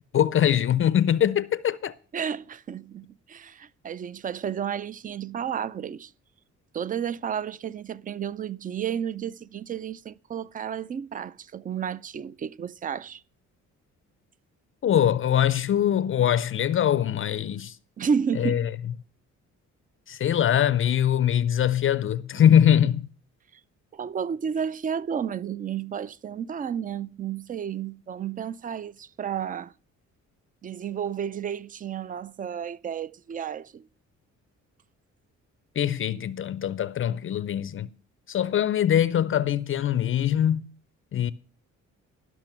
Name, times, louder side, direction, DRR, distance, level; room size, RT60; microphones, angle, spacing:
voice 1, 0.1-1.9 14.8-17.8 18.4-18.7 20.1-23.1 35.8-37.9 38.3-40.6 41.1-41.3, left 10 dB, 45° left, 0.4 m, -22 dB
voice 2, 2.1-6.1 6.7-13.2 18.0-18.7 23.9-29.7 30.6-33.8, right 8 dB, 30° right, 0.4 m, -32 dB
12.0 x 6.0 x 5.9 m
cardioid pair, 90°, 30 cm